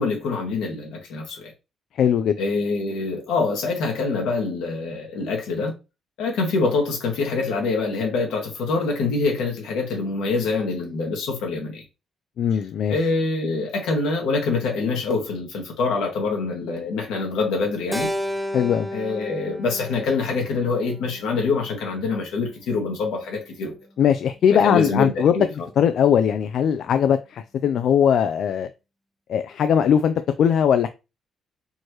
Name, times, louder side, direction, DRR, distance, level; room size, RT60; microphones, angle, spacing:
voice 1, 0.0-1.5 2.4-5.7 6.2-11.8 12.9-18.1 18.9-23.7 24.6-25.5, left 4 dB, 90° left, 1.6 m, -25 dB
voice 2, 2.0-2.4 12.4-12.9 18.5-18.9 24.0-25.3 25.8-28.7 29.3-30.9, left 8 dB, 70° left, 0.3 m, -20 dB
Keyboard (musical), 17.9-22.3, equal, 10° right, 0.5 m, -33 dB
4.5 x 3.1 x 3.0 m
cardioid pair, 90°, 0 cm